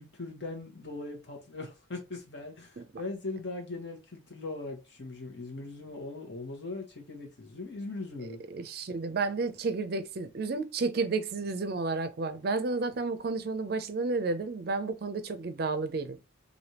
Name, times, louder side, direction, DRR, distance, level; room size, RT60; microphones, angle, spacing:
voice 1, 0.0-8.4, left 2 dB, 60° left, 1.2 m, -40 dB
voice 2, 8.2-16.2, right 3 dB, 50° right, 0.4 m, -31 dB
3.3 x 2.6 x 2.8 m
head